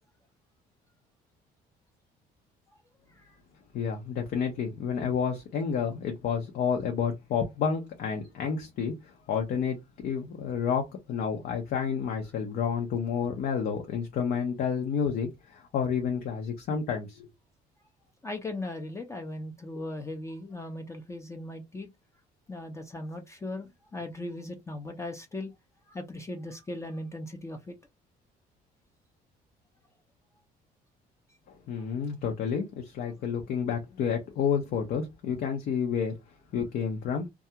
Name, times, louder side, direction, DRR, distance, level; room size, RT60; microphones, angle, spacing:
voice 1, 3.1-3.4 18.2-21.9 22.5-25.5 25.9-27.8 31.8-31.9, left 2 dB, 15° left, 0.5 m, -38 dB
voice 2, 3.7-9.8 10.0-17.3 31.5-36.2 36.5-37.3, left 7 dB, 65° left, 0.6 m, -30 dB
2.3 x 2.3 x 2.8 m
cardioid pair, 110°, 17 cm